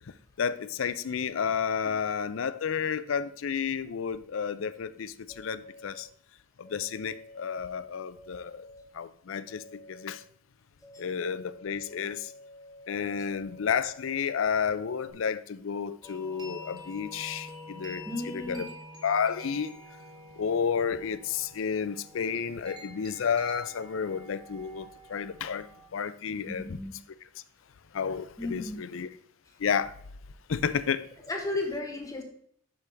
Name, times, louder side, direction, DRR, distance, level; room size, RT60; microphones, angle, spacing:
voice 1, 0.4-6.1 6.6-8.7 8.9-10.2 11.0-12.3 12.9-18.7 19.0-19.7 20.4-26.8 27.9-29.1 29.6-30.0 30.5-31.1, left 6 dB, 70° left, 0.5 m, -31 dB
sound 1, 5.3-6.0 6.6-7.4 8.2-8.8 9.5-10.2 10.8-15.1, left 1 dB, ahead, 0.9 m, -50 dB
sound 2, 16.0-25.9, left 1 dB, 20° right, 1.5 m, -47 dB
voice 2, 18.1-18.7 26.3-26.9 28.4-28.8 31.3-32.2, left 2 dB, 15° left, 1.3 m, -34 dB
8.3 x 6.0 x 3.4 m
head